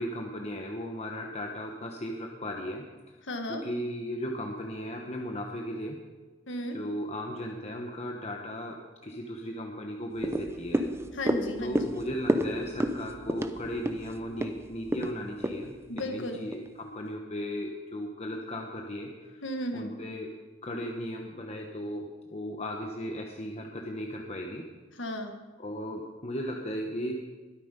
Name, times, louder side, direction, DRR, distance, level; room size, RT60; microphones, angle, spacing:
voice 1, 0.0-3.2 3.5-6.0 6.7-10.8 11.6-19.4 19.7-20.3 20.6-24.7 25.6-27.1, equal, 35° left, 2 dB, 1.1 m, -36 dB
voice 2, 3.2-3.6 6.5-6.8 11.1-11.9 15.9-16.4 19.4-20.0 24.9-25.3, left 1 dB, 75° left, 4 dB, 1.7 m, -35 dB
sound 1, 10.2-16.7 17.1-17.2, equal, 15° right, 0.6 m, -31 dB
22.0 x 9.3 x 5.2 m, 1.3 s
head